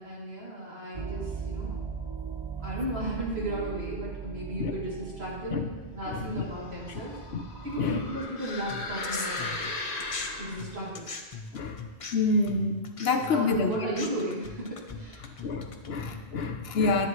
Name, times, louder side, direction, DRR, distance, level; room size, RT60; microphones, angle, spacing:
voice 1, 0.0-1.7 2.6-5.6 5.9-7.2 7.6-9.7 10.4-11.1 13.3-15.3, right 1 dB, 70° right, -6 dB, 3.0 m, -35 dB
sound 1, 0.9-8.2, right 6 dB, 35° right, 0.5 m, -39 dB
voice 2, 6.1-6.4 6.9-7.0 7.3-7.4 7.8-8.0 11.5-11.8 12.1-13.7 15.2-17.1, left 3 dB, 70° left, 5 dB, 1.0 m, -28 dB
sound 2, 6.4-10.8, left 2 dB, 55° left, 1.4 m, -37 dB
sound 3, 8.7-10.3 10.6-16.3, left 4 dB, 35° left, 0.7 m, -40 dB
10.0 x 10.0 x 3.1 m, 1.2 s
omnidirectional pair, 1.1 m